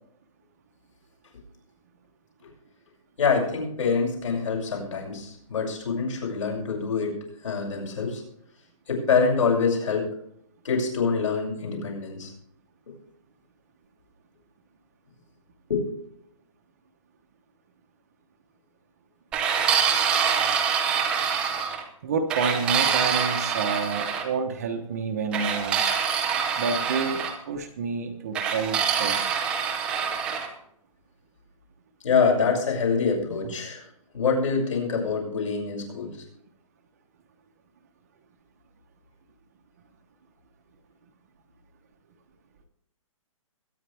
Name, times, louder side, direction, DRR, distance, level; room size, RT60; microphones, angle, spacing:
voice 1, 3.2-7.2 7.4-8.2 8.9-10.1 10.6-12.3 15.7-15.9 32.0-33.9 34.1-36.2, left 5 dB, 65° left, 0 dB, 6.7 m, -25 dB
sound 1, 19.3-21.8 22.3-24.2 25.3-27.4 28.3-30.5, right 7 dB, 5° right, 0.6 m, -25 dB
voice 2, 22.0-25.9 26.6-29.4 33.4-33.5, right 4 dB, 25° right, 5 dB, 1.1 m, -29 dB
22.5 x 9.9 x 3.5 m, 0.70 s
hypercardioid pair, 180°, 18 cm